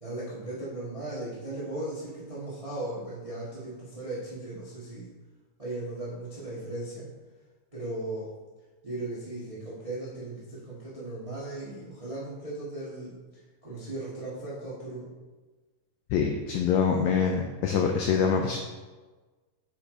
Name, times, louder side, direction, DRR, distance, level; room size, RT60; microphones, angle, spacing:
voice 1, 0.0-5.1 5.6-7.1 7.7-8.3 8.8-13.1 13.6-15.1, right 2 dB, 45° right, -8 dB, 0.4 m, -37 dB
voice 2, 16.1-18.6, left 6 dB, 90° left, 3 dB, 1.6 m, -25 dB
6.9 x 4.9 x 3.8 m, 1.3 s
omnidirectional pair, 3.8 m